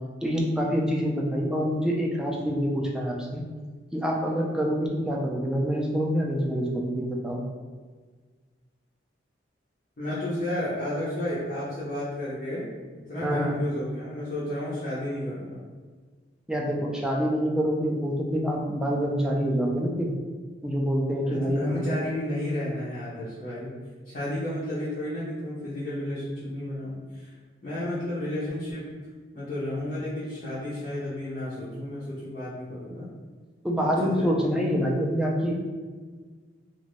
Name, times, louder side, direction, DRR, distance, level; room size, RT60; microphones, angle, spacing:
voice 1, 0.2-3.4 3.9-7.4 13.2-13.6 16.5-20.1 20.6-21.9 33.6-35.5, equal, 5° right, -2 dB, 0.3 m, -26 dB
voice 2, 10.0-12.7 13.1-15.6 21.2-23.8 24.0-27.3 27.6-28.9 29.3-33.1 34.0-34.3, left 1 dB, 45° left, -11 dB, 0.8 m, -32 dB
2.5 x 2.5 x 3.1 m, 1.5 s
head